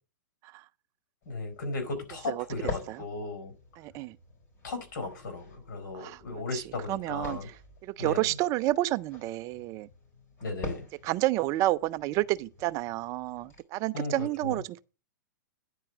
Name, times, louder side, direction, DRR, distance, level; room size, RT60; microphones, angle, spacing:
sound 1, 1.2-13.6, left 3 dB, 25° left, 4.4 m, -46 dB
voice 1, 1.3-3.5 4.6-7.5 8.0-8.3 10.4-10.9 13.9-14.6, left 3 dB, 70° left, 4.1 m, -36 dB
voice 2, 2.3-3.0 3.8-4.2 5.9-6.2 6.5-9.9 11.0-14.8, right 16 dB, 30° right, 0.4 m, -30 dB
9.9 x 4.5 x 7.1 m
hypercardioid pair, 135°, 10 cm